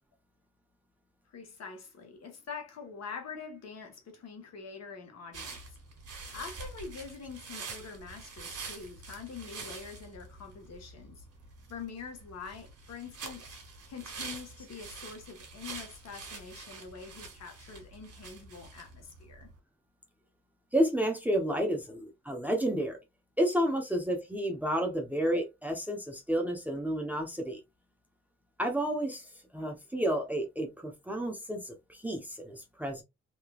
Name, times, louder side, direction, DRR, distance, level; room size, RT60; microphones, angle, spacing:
voice 1, 1.3-5.6 6.3-11.2 11.7-13.5 13.9-19.5, left 5 dB, 60° left, 1.3 m, -45 dB
sound 1, 5.3-19.6, right 4 dB, 55° right, 1.7 m, -46 dB
voice 2, 20.7-23.0 23.4-27.6 28.6-29.3 29.5-33.0, right 1 dB, 5° right, 0.8 m, -31 dB
3.2 x 2.9 x 2.3 m
cardioid pair, 90°, 30 cm